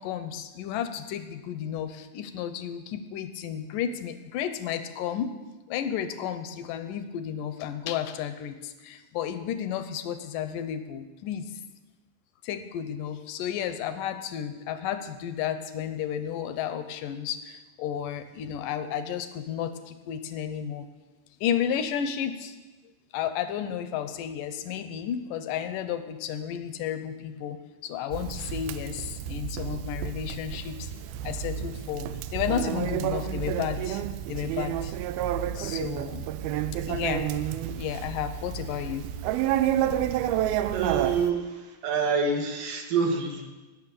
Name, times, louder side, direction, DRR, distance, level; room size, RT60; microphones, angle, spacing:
voice 1, 0.0-5.3 5.7-11.5 12.4-20.9 21.4-22.6 23.1-30.9 31.2-34.0 34.3-34.9 35.5-36.3 36.9-37.3 37.7-39.1, left 9 dB, 75° left, 10 dB, 2.2 m, -32 dB
Conversation, 28.1-41.3, right 10 dB, 90° right, 2.5 m, -30 dB
voice 2, 40.6-43.4, right 5 dB, 65° right, 3 dB, 3.0 m, -27 dB
19.0 x 6.4 x 6.8 m, 1.2 s
omnidirectional pair, 4.2 m